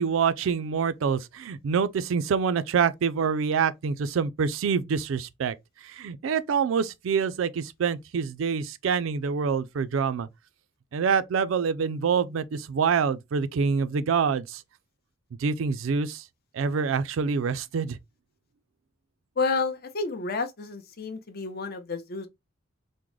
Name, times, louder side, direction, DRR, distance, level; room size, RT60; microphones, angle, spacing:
voice 1, 0.0-5.5 5.8-10.3 10.9-14.6 15.4-16.2 16.5-18.0, right 6 dB, 75° right, 0.4 m, -26 dB
voice 2, 19.4-22.3, left 4 dB, 50° left, 0.6 m, -30 dB
3.6 x 2.1 x 3.1 m
head